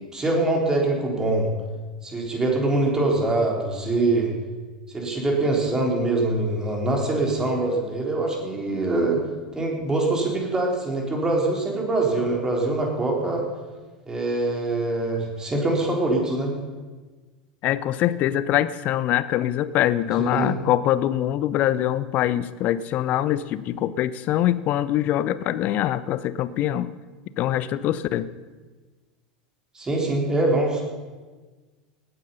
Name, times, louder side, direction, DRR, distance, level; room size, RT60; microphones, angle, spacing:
voice 1, 0.1-1.5 2.0-4.3 4.9-9.2 9.5-13.4 14.0-16.5 20.2-20.5 29.7-30.8, right 2 dB, 15° right, 0 dB, 3.9 m, -24 dB
voice 2, 17.6-26.9 27.4-28.3, left 12 dB, 45° left, 16 dB, 0.7 m, -23 dB
18.0 x 9.9 x 5.6 m, 1.3 s
figure-of-eight pair, 80°, 4 cm